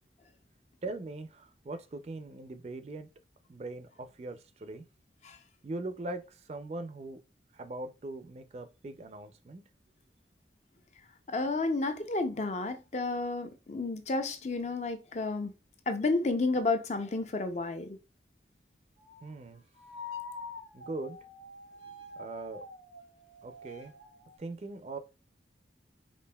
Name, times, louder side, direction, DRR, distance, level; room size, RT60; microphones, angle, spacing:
voice 1, 0.8-3.1 3.5-4.9 5.6-7.2 7.5-9.6 19.2-19.6 20.7-21.2 22.2-22.6 23.4-23.9 24.4-25.0, right 2 dB, 35° right, 0.4 m, -40 dB
voice 2, 11.3-15.5 15.9-18.0, left 3 dB, 40° left, 0.5 m, -31 dB
sound 1, 19.0-19.3 19.8-24.4, left 3 dB, 75° left, 1.1 m, -46 dB
5.2 x 2.5 x 2.2 m
head